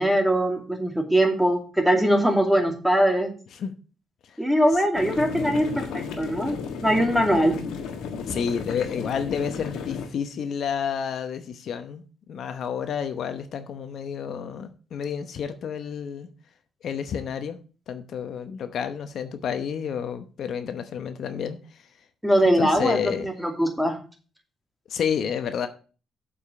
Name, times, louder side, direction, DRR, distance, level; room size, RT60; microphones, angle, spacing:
voice 1, 0.0-3.3 4.4-7.6 22.2-24.0, equal, ahead, 2.4 m, -22 dB
sound 1, 4.9-10.1, left 6 dB, 85° left, 1.5 m, -33 dB
voice 2, 8.2-16.3 16.8-17.6 17.9-21.8 22.6-23.3 24.9-25.7, left 7 dB, 65° left, 0.9 m, -30 dB
7.2 x 5.1 x 7.1 m
cardioid pair, 90°, 0 cm